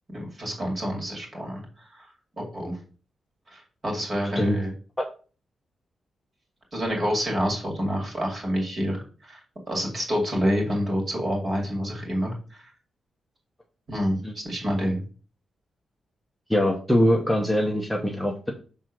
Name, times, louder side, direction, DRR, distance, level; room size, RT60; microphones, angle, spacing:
voice 1, 0.1-1.6 1.9-2.1 2.4-2.8 3.5-4.7 6.7-9.4 9.7-12.7 13.9-15.0, equal, 30° right, -1 dB, 2.4 m, -28 dB
voice 2, 16.5-18.5, equal, ahead, 0 dB, 0.8 m, -23 dB
6.2 x 3.6 x 6.0 m, 0.38 s
wide cardioid pair, 170°, 0 cm